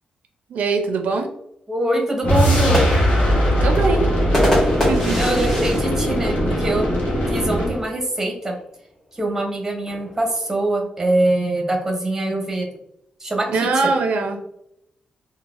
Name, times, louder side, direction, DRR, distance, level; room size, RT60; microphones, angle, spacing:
voice 1, 0.5-1.3 3.6-4.1 4.9-5.2 13.5-14.4, right 4 dB, 85° right, 5 dB, 0.4 m, -21 dB
voice 2, 1.7-2.8 5.2-6.9 7.3-8.6 9.1-12.7 13.2-13.7, right 1 dB, 15° right, 1 dB, 0.7 m, -23 dB
sound 1, 2.2-7.8, equal, 75° left, 1.0 m, -20 dB
sound 2, 2.4-7.1 7.5-7.6 7.9-8.3 9.2-10.7, equal, 15° left, 1.1 m, -25 dB
3.9 x 2.1 x 2.4 m, 0.76 s
wide cardioid pair, 135°, 2 cm